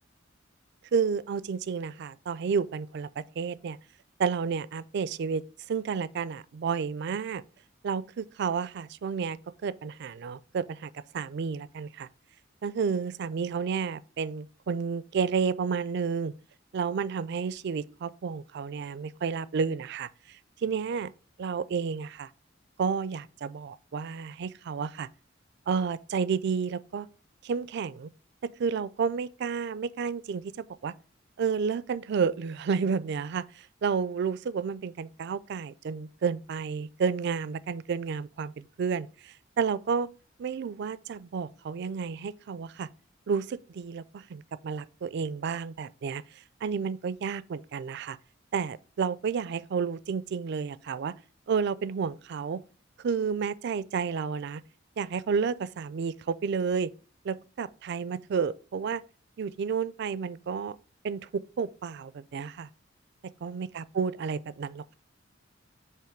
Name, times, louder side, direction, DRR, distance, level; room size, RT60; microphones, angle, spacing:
voice 1, 0.9-3.1 3.4-3.8 4.2-5.4 5.7-7.4 7.8-9.4 9.6-12.1 12.6-16.3 16.7-20.1 20.6-21.1 21.4-22.3 22.8-25.1 25.7-27.1 27.4-28.1 28.4-30.9 31.4-40.1 40.4-42.9 43.3-46.2 46.6-48.2 48.5-51.1 51.5-52.6 53.0-54.6 55.0-56.9 57.2-59.0 59.4-60.8 61.0-62.7 63.4-64.9, right 6 dB, 60° right, 0.4 m, -31 dB
7.7 x 3.0 x 5.0 m
head